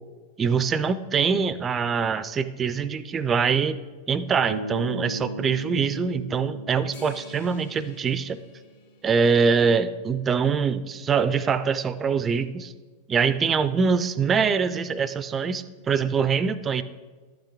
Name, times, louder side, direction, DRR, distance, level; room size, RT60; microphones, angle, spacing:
voice 1, 0.4-3.8 4.1-8.4 9.0-12.7 13.1-16.8, right 6 dB, 20° right, 15 dB, 0.4 m, -24 dB
sound 1, 4.5-8.7, equal, 85° right, 0.5 m, -37 dB
sound 2, 6.9-9.6, left 4 dB, 75° left, 2.4 m, -51 dB
11.5 x 8.3 x 3.5 m, 1.4 s
figure-of-eight pair, 90°, 0 cm